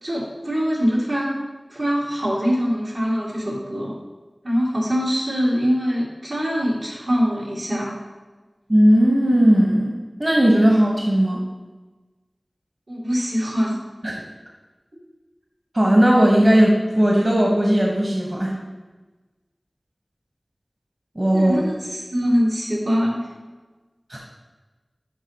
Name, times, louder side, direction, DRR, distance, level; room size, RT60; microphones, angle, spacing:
voice 1, 0.0-1.3 1.7-3.9 4.4-8.0 12.9-13.8 21.3-23.3, equal, 80° right, -7 dB, 2.5 m, -23 dB
voice 2, 8.7-9.9 10.2-11.4 14.0-14.1 15.7-18.5 21.1-21.6 24.1-24.2, equal, 40° right, -2 dB, 1.2 m, -17 dB
11.5 x 4.6 x 2.9 m, 1.2 s
wide cardioid pair, 55°, 0 cm